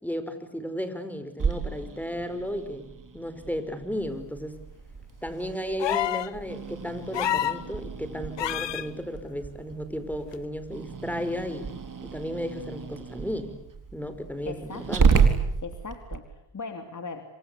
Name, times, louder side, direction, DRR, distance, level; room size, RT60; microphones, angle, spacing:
voice 1, 0.0-2.9 3.1-4.6 5.2-11.7 12.0-13.5 13.9-15.3, equal, 5° left, 10 dB, 5.5 m, -34 dB
Growling, 1.4-16.2, right 5 dB, 40° right, 4.2 m, -31 dB
sound 1, 5.8-6.3 7.1-7.6 8.4-8.9 10.3-10.4, left 11 dB, 60° left, 1.2 m, -27 dB
voice 2, 14.4-15.1 15.6-17.2, left 4 dB, 35° left, 6 dB, 3.2 m, -39 dB
27.0 x 26.0 x 8.5 m, 0.76 s
cardioid pair, 70°, 49 cm